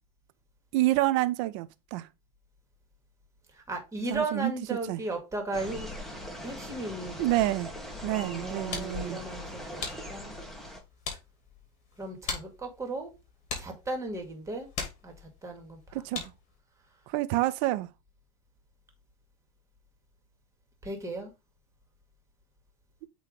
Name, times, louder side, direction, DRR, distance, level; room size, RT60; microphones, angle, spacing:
voice 1, 0.7-2.1 4.1-4.5 4.9-5.0 7.2-7.7 8.0-9.2 15.9-16.3 17.1-17.9, right 17 dB, 60° right, 0.7 m, -28 dB
voice 2, 3.5-6.2 6.4-7.3 8.0-9.8 10.1-10.4 12.0-13.1 13.6-14.7 15.0-15.1 15.4-16.0 20.8-21.3, right 2 dB, 15° right, 2.2 m, -36 dB
sound 1, 5.5-10.8, left 1 dB, ahead, 1.5 m, -40 dB
sound 2, 8.3-16.6, left 5 dB, 40° left, 2.7 m, -42 dB
8.3 x 3.2 x 3.8 m
supercardioid pair, 125°, 18 cm